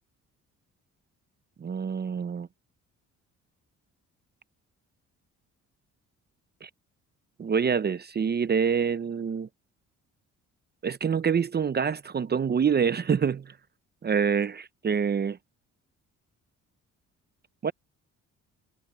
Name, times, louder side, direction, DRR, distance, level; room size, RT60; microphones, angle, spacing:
voice 1, 1.6-2.5 6.6-6.7 7.4-9.5 10.8-13.5 14.0-14.5 14.8-15.4 17.6-17.7, right 6 dB, 35° right, 0.7 m, -26 dB
cardioid pair, 90°, 30 cm